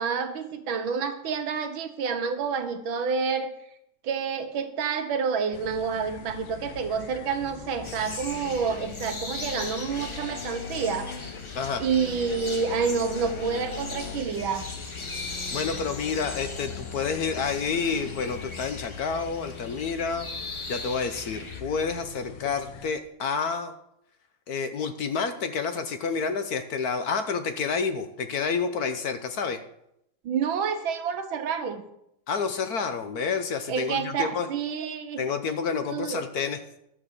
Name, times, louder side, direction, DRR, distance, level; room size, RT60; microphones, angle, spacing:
voice 1, 0.0-3.5 4.0-11.1 11.8-14.7 30.2-31.8 33.7-35.2 35.9-36.2, right 6 dB, 85° right, 8 dB, 1.9 m, -28 dB
sound 1, 5.5-22.9, left 7 dB, 90° left, 1.6 m, -41 dB
sound 2, 7.8-21.6, left 2 dB, 25° left, 0.6 m, -39 dB
voice 2, 15.5-23.7 24.5-29.6 32.3-34.5 35.2-36.6, left 5 dB, 60° left, 9 dB, 1.1 m, -29 dB
12.0 x 7.2 x 6.6 m, 0.79 s
omnidirectional pair, 2.1 m